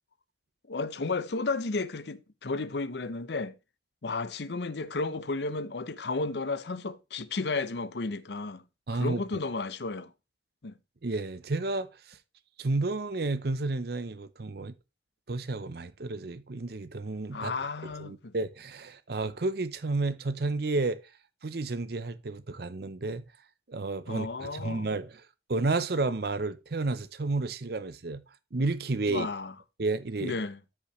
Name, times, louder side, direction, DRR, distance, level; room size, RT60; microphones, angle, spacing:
voice 1, 0.7-3.5 4.0-8.6 8.9-10.1 10.6-10.7 17.3-18.3 24.1-24.9 29.1-29.5 30.2-30.6, left 3 dB, 75° left, 0.7 m, -33 dB
voice 2, 8.9-9.2 11.0-12.2 12.6-14.7 15.3-17.5 17.8-21.0 21.4-23.2 23.7-25.2 25.5-28.2 28.5-29.3 29.8-30.4, right 3 dB, 60° right, 0.7 m, -31 dB
13.0 x 5.5 x 3.1 m
head